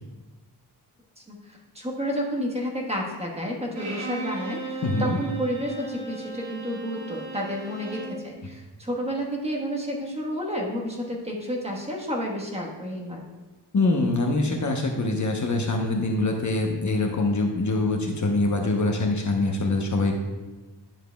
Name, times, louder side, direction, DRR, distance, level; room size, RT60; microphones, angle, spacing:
voice 1, 1.2-13.2, equal, 15° right, -1 dB, 1.2 m, -31 dB
Bowed string instrument, 3.7-8.2, right 3 dB, 90° right, 1.8 m, -36 dB
voice 2, 4.8-5.2 13.7-20.1, left 2 dB, 45° left, 1 dB, 0.8 m, -24 dB
10.5 x 7.4 x 2.3 m, 1.2 s
wide cardioid pair, 150°, 41 cm